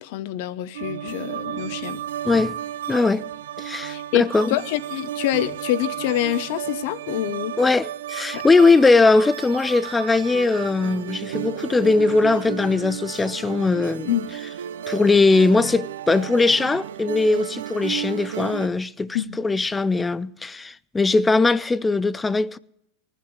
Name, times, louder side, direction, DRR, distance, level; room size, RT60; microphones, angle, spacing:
voice 1, 0.0-2.0 3.9-7.5 8.3-8.4 14.1-14.3 19.1-19.4, left 13 dB, 65° left, 0.9 m, -26 dB
sound 1, 0.7-18.7, right 11 dB, 85° right, 0.5 m, -33 dB
voice 2, 2.2-2.6 2.9-3.3 3.6-4.6 7.6-14.1 14.9-22.6, left 3 dB, 15° left, 0.5 m, -20 dB
19.5 x 7.5 x 8.2 m
hypercardioid pair, 110°, 0 cm